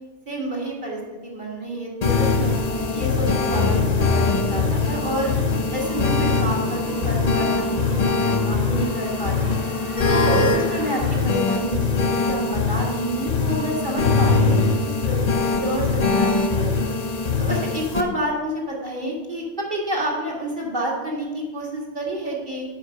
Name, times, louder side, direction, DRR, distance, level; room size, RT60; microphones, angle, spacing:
voice 1, 0.3-2.5 2.9-5.3 5.7-9.6 10.1-15.2 15.5-16.9 17.4-22.6, equal, 45° right, -3 dB, 2.0 m, -29 dB
sound 1, 2.0-18.0, left 4 dB, 40° left, 0.8 m, -22 dB
sound 2, 2.6-7.8, equal, 85° left, 1.8 m, -36 dB
sound 3, 5.8-11.2, right 2 dB, 60° right, 1.2 m, -40 dB
7.8 x 5.1 x 6.3 m, 1.3 s
omnidirectional pair, 1.1 m